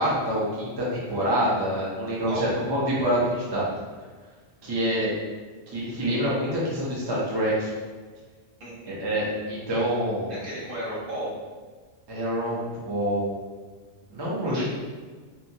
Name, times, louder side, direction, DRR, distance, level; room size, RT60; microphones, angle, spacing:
voice 1, 0.0-3.6 4.6-5.1 5.7-7.7 8.9-10.3 12.1-12.6 12.8-13.3 14.1-14.6, equal, 30° right, -7 dB, 0.5 m, -26 dB
voice 2, 2.3-2.6 8.6-9.0 10.3-11.3 14.5-14.6, right 1 dB, 55° right, -8 dB, 1.1 m, -34 dB
2.7 x 2.4 x 2.6 m, 1.4 s
omnidirectional pair, 1.2 m